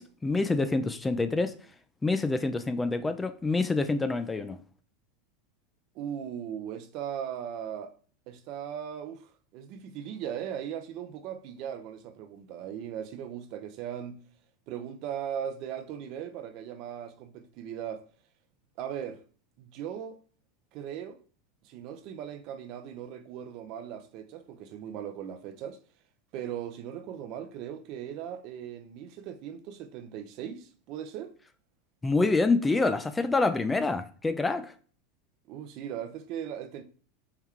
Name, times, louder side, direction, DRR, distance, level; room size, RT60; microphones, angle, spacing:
voice 1, 0.0-1.5 2.0-4.6 32.0-34.7, left 3 dB, 15° left, 0.4 m, -27 dB
voice 2, 5.9-8.0 8.3-14.2 14.7-18.0 18.8-19.2 19.6-20.2 20.7-21.2 21.6-25.8 26.3-31.3 35.5-36.8, right 9 dB, 55° right, 0.5 m, -38 dB
4.5 x 2.2 x 3.6 m
supercardioid pair, 115°, 0 cm